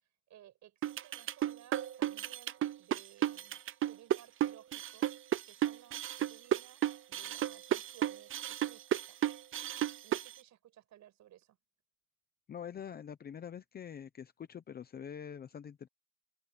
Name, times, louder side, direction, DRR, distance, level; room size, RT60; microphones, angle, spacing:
voice 1, 0.3-5.1 5.4-9.2 10.0-11.6, right 12 dB, 65° right, 7.1 m, -59 dB
sound 1, 0.8-10.3, right 12 dB, 45° right, 0.6 m, -33 dB
voice 2, 12.5-15.9, left 8 dB, 30° left, 0.7 m, -45 dB
cardioid pair, 175°, 30 cm